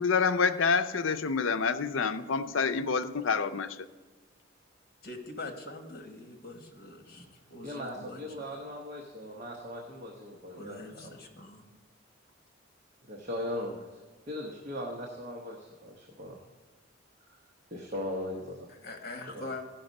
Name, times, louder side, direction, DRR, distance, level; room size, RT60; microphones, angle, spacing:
voice 1, 0.0-3.9, left 5 dB, 80° left, 9 dB, 0.5 m, -27 dB
voice 2, 5.0-7.2 7.5-8.5 10.6-11.7 18.7-19.6, left 2 dB, 50° left, 4 dB, 1.4 m, -43 dB
voice 3, 7.6-11.1 13.1-14.0 14.3-16.4 17.3-17.4 17.7-18.7 19.3-19.5, left 1 dB, 40° right, -1 dB, 1.0 m, -39 dB
15.5 x 5.8 x 5.3 m, 1.2 s
head